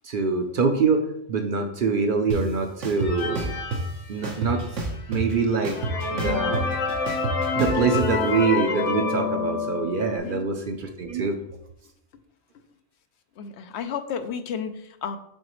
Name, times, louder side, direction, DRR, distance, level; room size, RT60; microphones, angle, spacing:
voice 1, 0.0-3.5 4.1-4.6 5.1-5.8 6.1-6.7 7.5-11.4, right 5 dB, 55° right, 5 dB, 0.7 m, -24 dB
sound 1, 2.3-2.4 2.8-3.8 4.2-5.3 5.6-8.0, right 3 dB, 90° right, 1.3 m, -29 dB
sound 2, 3.0-4.6 5.2-5.3 5.6-10.2, left 4 dB, 85° left, 1.2 m, -28 dB
voice 2, 10.0-10.4 12.5-12.6 13.4-15.2, left 7 dB, 70° left, 9 dB, 0.8 m, -33 dB
7.8 x 3.9 x 3.0 m, 0.75 s
omnidirectional pair, 1.2 m